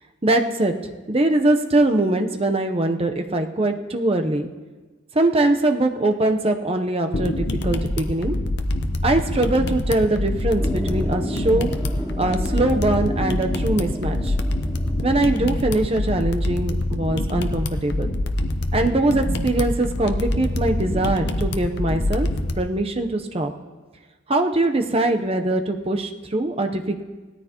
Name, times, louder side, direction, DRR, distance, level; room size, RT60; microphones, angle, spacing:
voice 1, 0.2-0.8 1.1-4.5 5.1-8.4 9.0-11.7 12.2-14.4 15.0-18.1 18.7-22.3 22.6-23.5 24.3-27.0, right 2 dB, 30° right, 5 dB, 0.8 m, -22 dB
sound 1, 7.1-22.6, left 1 dB, 60° left, 0.8 m, -25 dB
sound 2, 10.6-15.9, equal, 5° left, 0.7 m, -33 dB
18.0 x 13.5 x 2.9 m, 1.3 s
head